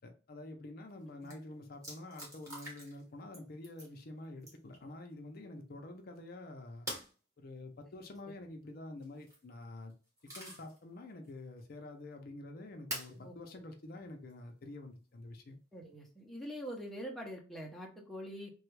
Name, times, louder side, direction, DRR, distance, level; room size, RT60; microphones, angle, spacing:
voice 1, 0.0-6.9 7.4-9.9 10.4-15.6, left 2 dB, 50° left, 4 dB, 0.5 m, -48 dB
sound 1, 0.9-1.0 1.2-1.4 1.8-3.0 3.3-3.9 4.4-4.8 6.9-7.1 9.0-9.4 9.9-10.8 11.2-11.3 12.9-13.2 14.3-14.4 16.4-16.9, right 1 dB, 15° right, 1.1 m, -45 dB
voice 2, 15.7-18.5, equal, ahead, -2 dB, 0.6 m, -44 dB
3.3 x 2.3 x 3.1 m, 0.36 s
head